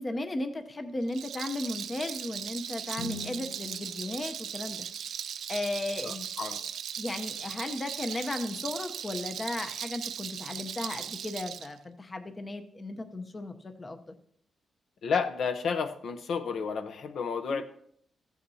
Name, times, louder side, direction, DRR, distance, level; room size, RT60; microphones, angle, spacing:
voice 1, 0.0-4.9 5.5-6.3 7.0-14.2 17.5-17.6, left 2 dB, 25° left, 7 dB, 0.7 m, -35 dB
Rattle, 1.0-11.7, right 8 dB, 75° right, 0.4 m, -38 dB
Guitar, 2.9-5.5, left 2 dB, 80° left, 1.3 m, -45 dB
voice 2, 6.0-6.6 15.0-17.6, left 5 dB, 65° left, 8 dB, 0.6 m, -31 dB
15.0 x 8.4 x 2.7 m, 0.66 s
wide cardioid pair, 135°, 0 cm